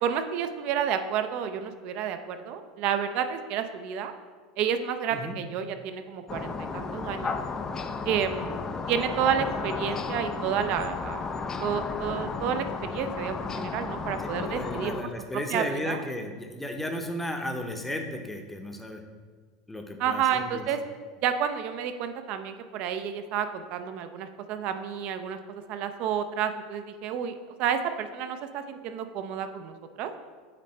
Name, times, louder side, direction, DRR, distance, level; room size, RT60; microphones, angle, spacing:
voice 1, 0.0-4.1 4.6-7.4 8.1-8.6 8.9-11.3 11.6-12.6 12.9-15.1 15.5-16.0 20.0-20.8 21.2-30.1, right 8 dB, 50° right, 8 dB, 0.5 m, -30 dB
sound 1, 6.3-15.0, left 4 dB, 20° left, 0.4 m, -33 dB
voice 2, 14.2-19.0 19.7-20.6, left 1 dB, 5° left, 4 dB, 0.8 m, -34 dB
9.1 x 4.1 x 3.2 m, 1.5 s
figure-of-eight pair, 80°, 2 cm